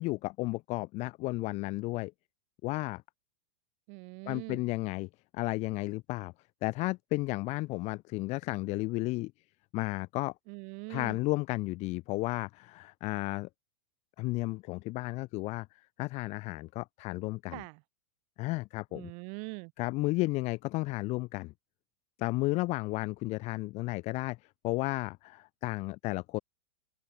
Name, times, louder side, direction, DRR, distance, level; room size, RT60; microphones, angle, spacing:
voice 1, 0.0-2.1 2.6-3.0 4.3-6.3 6.6-9.3 9.7-10.3 10.9-13.5 14.2-15.7 16.0-17.6 18.4-19.1 19.8-21.5 22.2-24.4 24.6-26.4, left 21 dB, 45° left, 5.4 m, -33 dB
voice 2, 3.9-4.6 10.5-11.2 17.5-17.8 18.9-19.7, right 39 dB, 50° right, 3.6 m, -42 dB
open air
hypercardioid pair, 115°, 16 cm